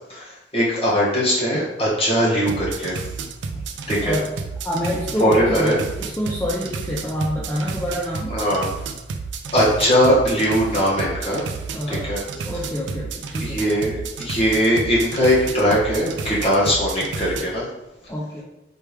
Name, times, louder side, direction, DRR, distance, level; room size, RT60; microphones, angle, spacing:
voice 1, 0.1-3.0 3.9-4.2 5.2-5.8 8.3-8.7 9.5-11.4 11.9-12.2 13.4-17.7, equal, 30° left, -7 dB, 1.5 m, -20 dB
sound 1, 2.4-17.5, right 5 dB, 75° right, 0.4 m, -31 dB
voice 2, 4.0-4.3 4.6-8.4 11.7-13.7 18.1-18.4, equal, 15° left, -5 dB, 0.5 m, -27 dB
4.6 x 3.4 x 3.4 m, 0.94 s
head